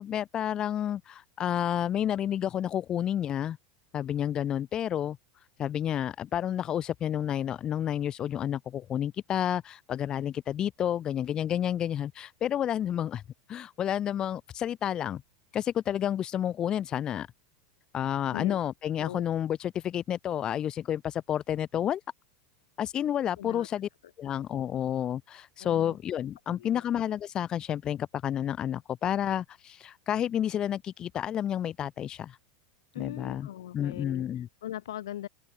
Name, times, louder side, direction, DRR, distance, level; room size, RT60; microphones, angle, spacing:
voice 1, 0.0-3.6 3.9-5.2 5.6-13.2 13.5-15.2 15.5-17.3 17.9-22.0 22.8-23.9 24.2-32.4 33.0-33.5 33.7-34.5, left 10 dB, 35° left, 1.9 m, -30 dB
voice 2, 23.4-23.7 25.6-26.0 26.5-26.8 32.9-35.3, left 12 dB, 80° left, 1.3 m, -40 dB
open air
hypercardioid pair, 105°, 2 cm